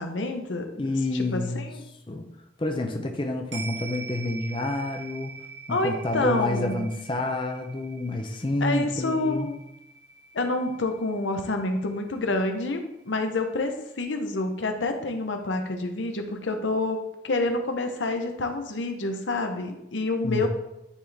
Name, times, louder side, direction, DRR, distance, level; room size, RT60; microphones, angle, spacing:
voice 1, 0.0-0.9 1.1-1.8 5.7-6.8 8.6-9.6 10.3-12.8 13.1-17.0 17.2-20.5, left 2 dB, 85° left, 5 dB, 0.8 m, -28 dB
voice 2, 0.8-1.7 2.1-2.3 2.6-5.3 5.7-9.5 20.2-20.5, left 2 dB, 25° left, 4 dB, 0.6 m, -28 dB
sound 1, 3.5-12.1 12.4-12.5, right 5 dB, 65° right, 1.8 m, -43 dB
9.7 x 4.0 x 3.4 m, 0.89 s
head